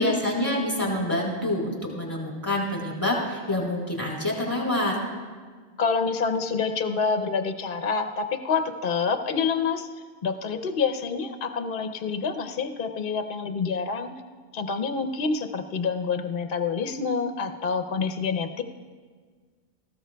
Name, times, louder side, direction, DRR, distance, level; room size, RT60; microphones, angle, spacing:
voice 1, 0.0-5.0, left 1 dB, 20° left, -3 dB, 4.1 m, -27 dB
voice 2, 5.8-9.9 10.2-14.1 14.5-18.7, left 5 dB, 60° left, 6 dB, 0.9 m, -27 dB
18.0 x 15.0 x 2.3 m, 1.6 s
omnidirectional pair, 1.0 m